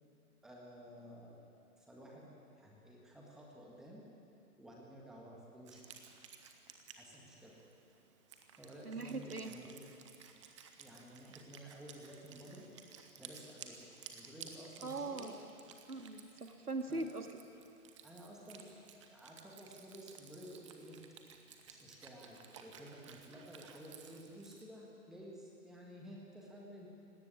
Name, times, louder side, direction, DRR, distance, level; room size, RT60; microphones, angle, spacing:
voice 1, 0.4-1.4 1.8-2.3 2.6-4.0 4.6-5.8 6.9-7.6 8.3-9.8 10.8-12.6 13.2-13.7 14.1-15.4 16.9-17.0 18.0-18.7 19.1-21.0 21.7-26.9, equal, ahead, -3 dB, 1.7 m, -53 dB
Wind instrument woodwind instrument, 5.7-24.6, right 7 dB, 20° right, 1.0 m, -56 dB
voice 2, 8.8-9.5 14.8-15.4 15.9-17.4, right 3 dB, 75° right, 5 dB, 2.4 m, -41 dB
18.0 x 16.5 x 9.9 m, 2.5 s
figure-of-eight pair, 135°, 46 cm